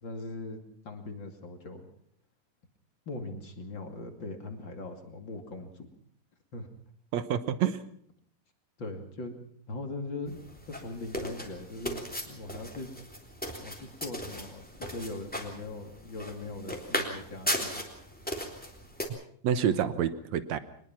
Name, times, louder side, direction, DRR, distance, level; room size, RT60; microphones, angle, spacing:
voice 1, 0.0-1.8 3.1-5.9 6.5-6.7 8.8-9.3 9.7-10.4 10.7-12.9 13.6-17.8 19.7-20.0, left 2 dB, 35° left, 5 dB, 2.8 m, -40 dB
voice 2, 7.1-7.8 19.4-20.6, right 9 dB, 65° right, 13 dB, 2.0 m, -28 dB
sound 1, 10.3-19.0, equal, 5° left, 3.0 m, -37 dB
23.5 x 20.5 x 5.9 m, 0.62 s
omnidirectional pair, 4.0 m